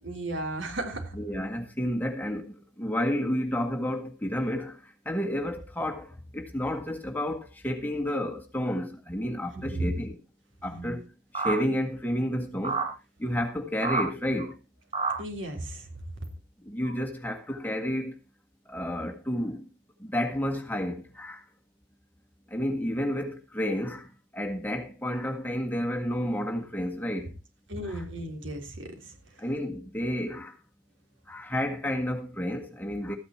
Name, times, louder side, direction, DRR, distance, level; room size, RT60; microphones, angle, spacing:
voice 1, 0.0-1.2 9.5-9.9 10.7-11.0 15.2-15.9 27.7-29.1, right 1 dB, 85° right, 3.5 m, -35 dB
voice 2, 1.1-10.2 10.6-11.1 11.3-12.9 13.2-14.6 16.6-18.1 18.7-19.6 20.0-21.5 22.5-27.3 27.9-28.0 29.4-30.6 31.3-33.2, equal, 10° left, 1.8 m, -31 dB
sound 1, 11.3-11.6 12.6-12.9 13.4-13.5 13.8-14.0 14.4-14.5 14.9-15.1 16.2-16.3 16.8-16.9, right 4 dB, 30° right, 7.9 m, -28 dB
14.5 x 9.5 x 4.4 m
head